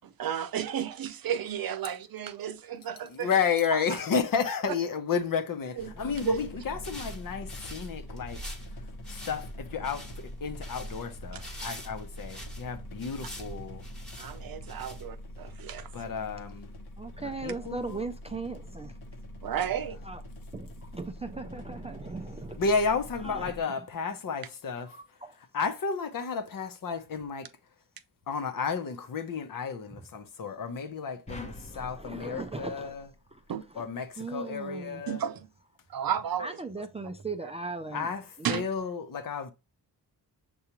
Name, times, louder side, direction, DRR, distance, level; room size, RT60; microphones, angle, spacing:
voice 1, 0.0-3.3 3.7-4.0 5.8-5.9 6.3-6.5 11.3-11.4 14.2-15.9 19.4-20.0 33.5-33.6 35.1-35.5 35.9-36.8 37.4-37.5 38.4-38.7, right 9 dB, 65° right, 0.6 m, -33 dB
voice 2, 3.1-8.4 9.1-13.8 15.9-16.7 17.2-18.0 22.6-24.9 25.5-27.5 28.3-33.1 33.8-35.2 37.9-39.5, left 5 dB, 60° left, 0.8 m, -32 dB
sound 1, 5.8-23.6, left 1 dB, 85° left, 1.1 m, -44 dB
sound 2, 5.9-15.4, right 1 dB, ahead, 1.0 m, -45 dB
voice 3, 17.0-18.9 20.0-20.2 20.5-22.6 23.2-23.5 24.8-25.4 31.7-32.9 33.3-33.4 33.7-33.8 34.2-35.0 36.4-38.1 38.4-38.6, right 3 dB, 20° right, 0.3 m, -38 dB
sound 3, 31.3-33.7, left 1 dB, 20° left, 0.6 m, -46 dB
6.8 x 2.4 x 2.9 m
wide cardioid pair, 125°, 38 cm